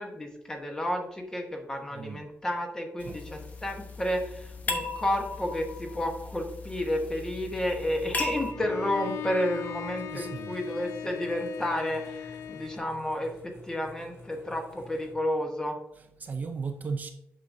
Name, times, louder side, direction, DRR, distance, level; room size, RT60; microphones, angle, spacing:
voice 1, 0.0-15.8, left 1 dB, 15° left, 1.1 m, -31 dB
voice 2, 1.9-2.3 3.1-3.2 10.1-10.6 16.0-17.1, right 5 dB, 35° right, 0.5 m, -36 dB
sound 1, 3.0-8.5, left 3 dB, 35° left, 0.9 m, -37 dB
sound 2, 7.0-15.1, left 2 dB, 65° left, 2.2 m, -51 dB
Bowed string instrument, 8.5-12.9, left 10 dB, 85° left, 0.4 m, -39 dB
8.3 x 6.2 x 2.6 m
wide cardioid pair, 180°, 5 cm